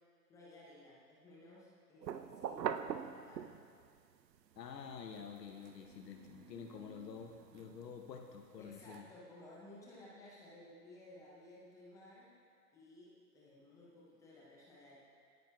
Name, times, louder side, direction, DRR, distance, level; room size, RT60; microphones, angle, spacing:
voice 1, 0.3-3.5 8.6-12.4 12.7-15.0, left 1 dB, 5° left, -5 dB, 0.5 m, -57 dB
sound 1, 2.0-3.9 4.3-9.0, right 8 dB, 85° right, 0.6 m, -44 dB
voice 2, 4.6-9.0, left 6 dB, 80° left, 3 dB, 0.9 m, -49 dB
19.0 x 9.2 x 2.2 m, 2.2 s
hypercardioid pair, 135°, 49 cm